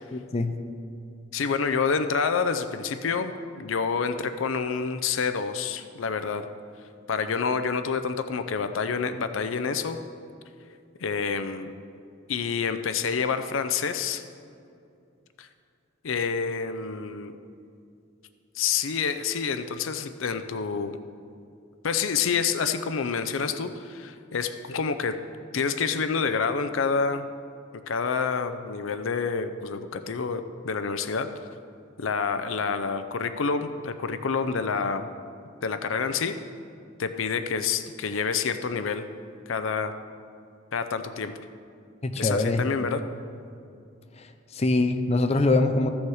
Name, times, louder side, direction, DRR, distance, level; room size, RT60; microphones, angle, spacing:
voice 1, 0.1-0.5 42.0-42.6 44.5-45.9, left 2 dB, 35° left, 7 dB, 0.6 m, -23 dB
voice 2, 1.3-6.5 7.1-10.0 11.0-11.7 12.3-14.2 15.4-15.5 16.0-17.3 18.5-21.0 21.8-25.2 25.5-27.3 27.9-31.3 32.0-35.1 35.6-36.3 37.0-39.1 39.5-39.9 40.7-41.3 42.2-43.0, left 5 dB, 75° left, 10 dB, 0.5 m, -28 dB
14.0 x 7.1 x 4.8 m, 2.5 s
head